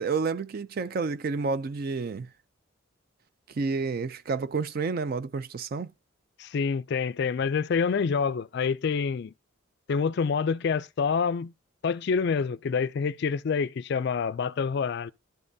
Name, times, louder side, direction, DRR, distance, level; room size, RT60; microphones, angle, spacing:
voice 1, 0.0-2.3 3.6-5.9, right 4 dB, 45° right, 0.3 m, -30 dB
voice 2, 6.4-9.3 9.9-11.5 11.8-15.1, left 5 dB, 55° left, 0.3 m, -27 dB
11.5 x 5.3 x 2.7 m
head